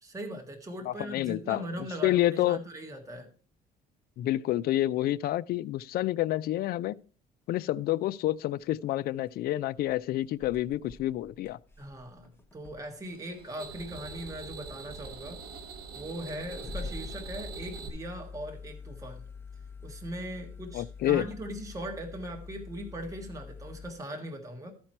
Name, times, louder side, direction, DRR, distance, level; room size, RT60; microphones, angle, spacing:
voice 1, 0.0-3.3 11.8-15.4 15.9-19.3 19.8-24.7, right 1 dB, 20° right, 1.7 m, -40 dB
voice 2, 0.9-2.6 4.2-7.0 7.5-11.6 20.7-21.2, left 14 dB, 65° left, 0.4 m, -28 dB
sound 1, 9.1-9.3 9.8-9.9 10.2-13.0 13.5-13.9 14.8-14.9 15.7-15.8 16.3-23.9, left 4 dB, 15° left, 0.9 m, -45 dB
sound 2, 13.1-17.9, right 5 dB, 60° right, 1.6 m, -43 dB
13.5 x 4.5 x 4.4 m
cardioid pair, 110°, 17 cm